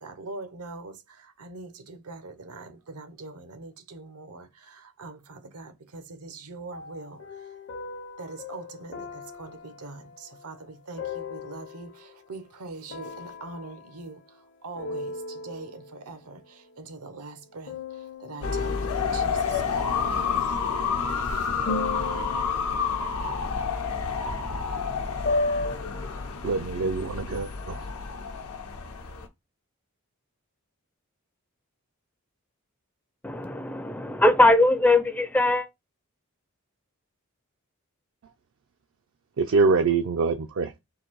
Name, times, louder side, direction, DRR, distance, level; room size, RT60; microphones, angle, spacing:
voice 1, 0.0-7.5 8.2-20.6 21.1-21.5, right 3 dB, 85° right, 0.8 m, -43 dB
sound 1, 6.7-12.2 12.9-14.5 14.8-16.0 17.7-20.7 21.7-25.8, left 3 dB, 55° left, 0.6 m, -36 dB
sound 2, 18.4-29.3, left 5 dB, 85° left, 0.8 m, -29 dB
voice 2, 26.4-27.9 38.2-38.3 39.4-40.7, right 4 dB, 65° right, 0.4 m, -24 dB
voice 3, 33.2-35.7, left 2 dB, 5° left, 0.4 m, -20 dB
3.8 x 2.6 x 4.5 m
head